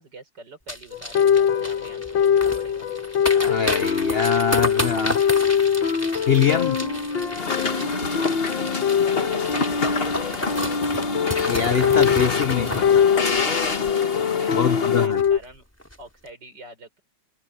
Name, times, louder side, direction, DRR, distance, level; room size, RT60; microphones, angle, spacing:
voice 1, 0.0-2.9 8.0-8.2 8.6-9.3 9.6-11.2 13.9-14.1 14.4-15.7 16.0-17.0, right 2 dB, 70° right, 5.4 m, -45 dB
sound 1, 0.7-14.5 14.8-14.9 15.1-15.4 15.8-16.0, equal, 5° left, 3.6 m, -32 dB
sound 2, 0.9-15.4, left 7 dB, 90° left, 2.1 m, -23 dB
voice 2, 3.3-5.2 6.3-6.8 11.5-13.1 14.5-15.2, left 7 dB, 65° left, 0.5 m, -23 dB
sound 3, 7.4-15.1, left 4 dB, 35° left, 1.5 m, -28 dB
omnidirectional pair, 2.0 m